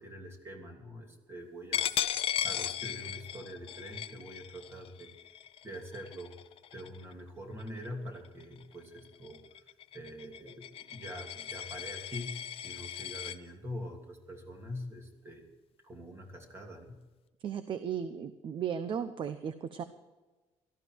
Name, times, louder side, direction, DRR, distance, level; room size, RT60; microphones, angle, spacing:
voice 1, 0.0-1.9 2.4-5.1 5.6-6.3 6.7-9.4 9.9-15.5 15.8-17.0, equal, 25° right, 2 dB, 2.9 m, -44 dB
Coin (dropping), 1.7-7.1 7.6-7.9 8.2-13.4, left 10 dB, 60° left, 0.7 m, -37 dB
voice 2, 17.4-19.8, right 8 dB, 50° right, 11 dB, 0.8 m, -35 dB
17.5 x 13.0 x 4.7 m, 1.2 s
cardioid pair, 140°, 11 cm